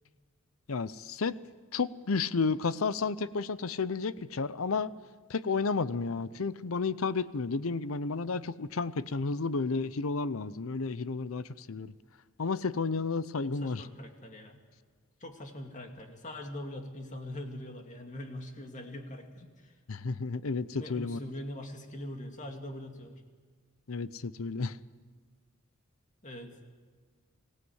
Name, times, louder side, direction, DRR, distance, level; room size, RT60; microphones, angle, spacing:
voice 1, 0.7-1.4 1.7-4.9 5.3-11.9 12.4-13.9 19.9-21.2 23.9-24.8, left 4 dB, 80° left, 16 dB, 0.7 m, -32 dB
voice 2, 13.4-14.6 15.2-19.7 20.8-23.2 26.2-26.6, left 1 dB, 35° left, 4 dB, 2.3 m, -42 dB
24.0 x 16.5 x 8.1 m, 1.5 s
head